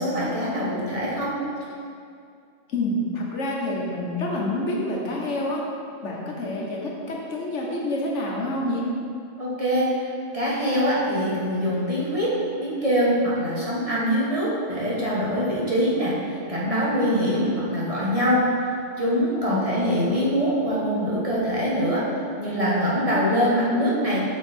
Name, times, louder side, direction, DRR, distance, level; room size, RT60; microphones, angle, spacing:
voice 1, 0.0-1.4 9.4-9.9 10.3-12.3 12.6-16.1 16.5-18.4 19.0-22.0 22.4-24.2, equal, 30° right, -7 dB, 1.4 m, -23 dB
voice 2, 2.7-5.6 6.0-8.8 19.5-19.9, left 1 dB, 85° left, -2 dB, 1.4 m, -28 dB
6.3 x 5.9 x 4.4 m, 2.3 s
omnidirectional pair, 1.2 m